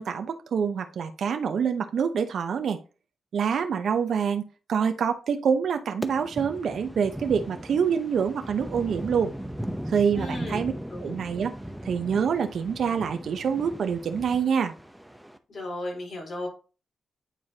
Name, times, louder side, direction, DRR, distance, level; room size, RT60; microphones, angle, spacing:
voice 1, 0.0-2.8 3.3-9.3 9.9-10.7 11.0-11.5 11.8-14.7, right 7 dB, 75° right, 7 dB, 0.7 m, -26 dB
sound 1, 6.0-15.4, equal, 5° right, 0.8 m, -38 dB
voice 2, 10.1-10.6 10.9-11.1 15.5-16.5, left 1 dB, 50° left, 0 dB, 3.9 m, -34 dB
9.2 x 4.8 x 2.8 m, 0.33 s
cardioid pair, 105°, 0 cm